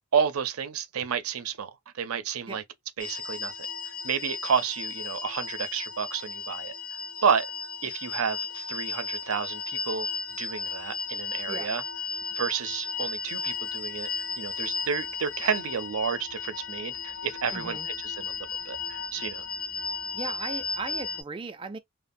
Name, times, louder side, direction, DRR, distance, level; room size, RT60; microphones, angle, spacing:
voice 1, 0.1-2.6 3.0-3.5 4.0-6.7 7.2-7.5 7.8-10.1 10.4-11.8 12.4-14.1 14.4-17.8 18.0-18.4 18.7-19.4, right 7 dB, 90° right, 0.5 m, -30 dB
sound 1, 3.0-21.2, left 5 dB, 80° left, 0.6 m, -35 dB
voice 2, 17.5-17.9 20.1-21.8, right 3 dB, 25° right, 0.3 m, -37 dB
2.9 x 2.0 x 2.5 m
head